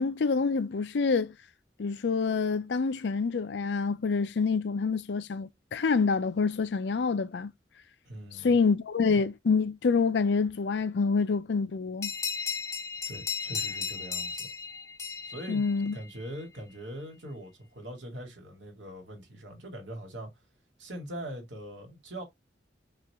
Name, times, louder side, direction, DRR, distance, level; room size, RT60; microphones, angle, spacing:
voice 1, 0.0-1.3 1.8-7.5 8.4-12.1 15.5-15.9, left 4 dB, 65° left, 0.5 m, -27 dB
voice 2, 8.1-8.6 13.1-14.5 15.2-20.3 20.8-22.2, equal, 85° right, 2.1 m, -42 dB
sound 1, 12.0-16.3, left 6 dB, 15° left, 0.5 m, -35 dB
5.7 x 2.5 x 3.4 m
head